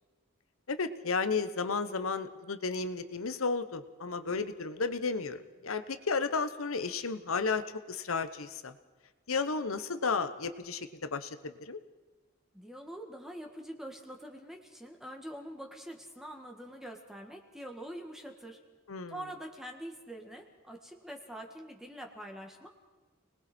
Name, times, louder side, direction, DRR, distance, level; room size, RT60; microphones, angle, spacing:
voice 1, 0.7-7.6 7.9-8.7 9.3-11.8 18.9-19.2, left 4 dB, 90° left, 10 dB, 1.1 m, -33 dB
voice 2, 12.5-18.6 19.1-22.7, right 1 dB, ahead, 2 dB, 1.7 m, -45 dB
30.0 x 20.0 x 4.4 m, 1.3 s
head